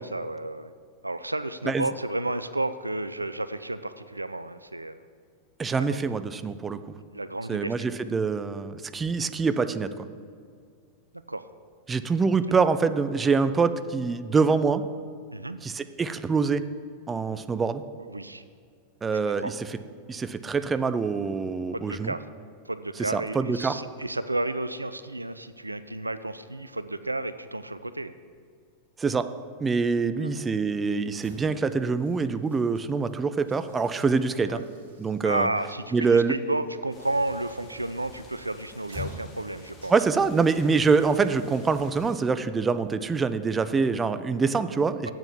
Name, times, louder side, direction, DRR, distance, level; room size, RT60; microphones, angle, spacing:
voice 1, 0.1-0.7 1.0-5.0 5.8-6.0 7.1-7.7 11.3-11.5 15.3-15.6 18.1-18.4 19.1-19.5 21.7-22.3 22.7-28.1 30.2-30.3 34.4-34.6 35.2-39.9 45.0-45.1, right 2 dB, 85° right, 13 dB, 0.3 m, -32 dB
voice 2, 5.6-6.8 7.5-10.0 11.9-14.8 15.6-16.6 17.1-17.8 19.0-19.5 20.1-22.1 23.1-23.8 29.0-29.3 29.6-34.6 35.0-35.5 35.9-36.4 39.9-45.1, right 4 dB, 15° right, 12 dB, 0.4 m, -25 dB
sound 1, 31.0-44.1, left 3 dB, 60° right, 2.5 m, -49 dB
sound 2, 36.9-42.1, left 3 dB, 25° left, 1.6 m, -51 dB
7.7 x 7.2 x 7.2 m, 2.1 s
figure-of-eight pair, 90°, 0 cm